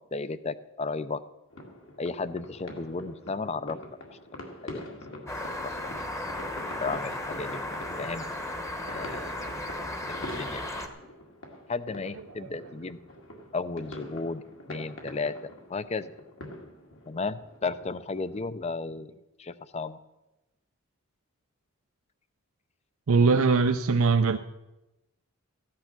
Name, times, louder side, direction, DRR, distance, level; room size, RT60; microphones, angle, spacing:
voice 1, 0.1-1.2 2.0-3.8 4.6-4.8 5.6-5.7 6.8-8.3 8.9-9.5 10.1-10.6 11.7-13.0 13.5-14.4 14.7-16.1 17.1-19.1 19.4-20.0, left 4 dB, 30° left, 15 dB, 0.5 m, -34 dB
sound 1, 1.5-18.4, left 1 dB, 60° left, 2.2 m, -45 dB
sound 2, 5.3-10.9, left 1 dB, 15° left, 1.0 m, -35 dB
voice 2, 23.1-24.4, right 4 dB, 75° right, 7 dB, 0.5 m, -21 dB
15.0 x 10.5 x 6.0 m, 0.97 s
head